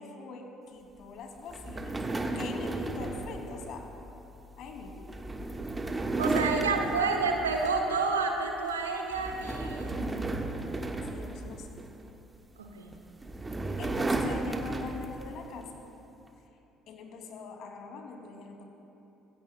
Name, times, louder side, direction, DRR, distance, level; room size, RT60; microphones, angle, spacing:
voice 1, 0.0-3.9 4.6-5.1 6.4-7.2 11.1-11.8 13.8-15.8 16.9-18.6, left 4 dB, 50° left, 3 dB, 2.3 m, -43 dB
sound 1, 1.5-8.0 8.4-8.7 9.1-12.1 12.9-15.4, right 2 dB, 20° right, 1.4 m, -34 dB
voice 2, 6.2-10.1 12.6-12.9, right 4 dB, 75° right, 2 dB, 1.5 m, -29 dB
26.5 x 21.5 x 2.2 m, 2.9 s
figure-of-eight pair, 50°, 0 cm